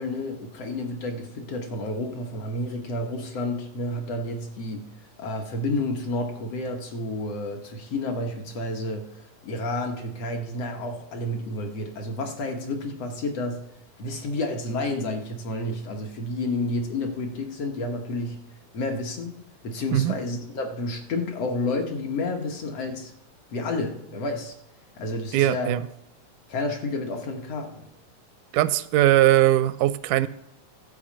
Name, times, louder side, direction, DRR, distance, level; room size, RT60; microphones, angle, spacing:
voice 1, 0.0-4.9 5.2-13.6 14.0-18.4 18.7-23.1 23.5-24.5 25.0-25.7 26.5-27.9, left 2 dB, 60° left, 3 dB, 2.0 m, -30 dB
voice 2, 25.3-25.9 28.5-30.3, right 14 dB, 85° right, 15 dB, 2.1 m, -20 dB
12.5 x 5.0 x 7.4 m, 0.81 s
omnidirectional pair, 3.5 m